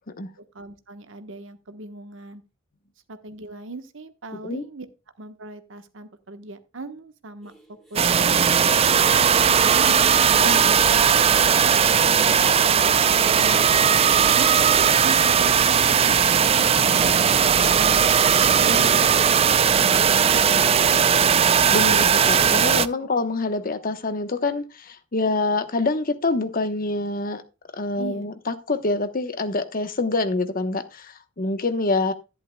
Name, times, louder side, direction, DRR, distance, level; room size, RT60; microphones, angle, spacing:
voice 1, 0.1-2.4 3.1-4.9 5.2-9.2 9.6-10.6 13.4-16.7 16.9-17.1 17.6-19.1 23.0-23.1 27.9-28.2, right 2 dB, 65° right, 1.1 m, -40 dB
sound 1, 7.4-14.7, right 1 dB, ahead, 2.3 m, -45 dB
sound 2, 8.0-22.9, right 7 dB, 30° right, 0.4 m, -18 dB
voice 2, 10.3-10.8 18.6-18.9 21.7-27.4 27.7-32.1, left 3 dB, 45° left, 1.0 m, -26 dB
11.5 x 11.0 x 2.2 m
head